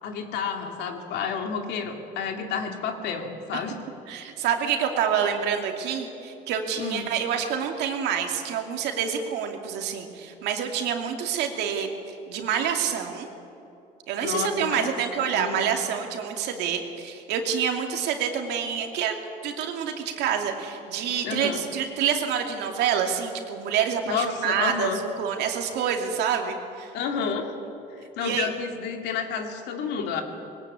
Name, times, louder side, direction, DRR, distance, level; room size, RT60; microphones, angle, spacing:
voice 1, 0.0-3.8 6.8-7.1 14.2-14.9 15.3-15.7 21.2-21.6 24.1-25.0 26.9-27.6 27.9-30.2, left 6 dB, 85° left, 4 dB, 2.5 m, -30 dB
voice 2, 4.1-13.3 14.1-19.2 19.4-26.9 28.2-28.5, right 8 dB, 85° right, 3 dB, 2.5 m, -27 dB
21.0 x 18.5 x 8.6 m, 2.9 s
cardioid pair, 110°, 17 cm